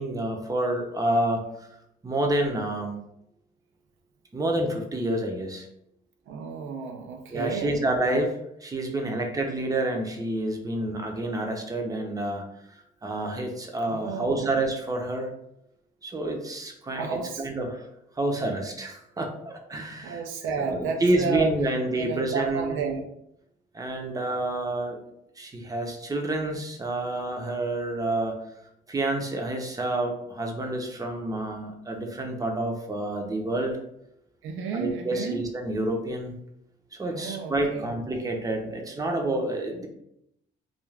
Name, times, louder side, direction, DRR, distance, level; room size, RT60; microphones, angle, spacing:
voice 1, 0.0-1.4 2.0-3.0 4.3-5.7 7.3-12.5 13.0-15.3 16.0-17.1 17.4-17.9 18.2-20.2 20.7-22.8 23.7-25.0 25.4-28.4 28.9-33.8 34.7-36.3 37.0-39.9, right 1 dB, 20° right, 2 dB, 0.6 m, -28 dB
voice 2, 6.3-7.8 9.1-9.2 10.8-11.0 13.9-14.6 17.0-17.5 20.0-21.5 21.9-23.0 34.4-35.4 37.1-38.0, right 5 dB, 85° right, 4 dB, 0.5 m, -32 dB
2.4 x 2.3 x 3.2 m, 0.79 s
cardioid pair, 90°, 20 cm